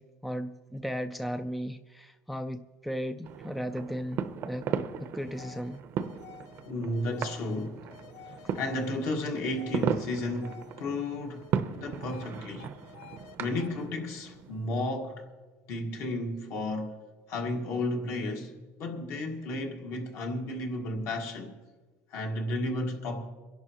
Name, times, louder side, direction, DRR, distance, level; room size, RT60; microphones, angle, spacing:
voice 1, 0.0-4.7 5.0-5.8, equal, ahead, 0.3 m, -36 dB
sound 1, 3.2-14.7, right 8 dB, 45° right, 0.6 m, -37 dB
sound 2, 5.2-10.9 11.2-13.3 13.6-13.9, left 10 dB, 75° left, 0.7 m, -52 dB
voice 2, 6.6-7.9 8.2-11.5 11.7-12.7 13.4-15.3 15.7-17.0 17.3-18.5 18.8-21.5 22.1-23.3, left 2 dB, 55° left, 1.6 m, -33 dB
24.0 x 11.0 x 2.9 m
cardioid pair, 155°, 6 cm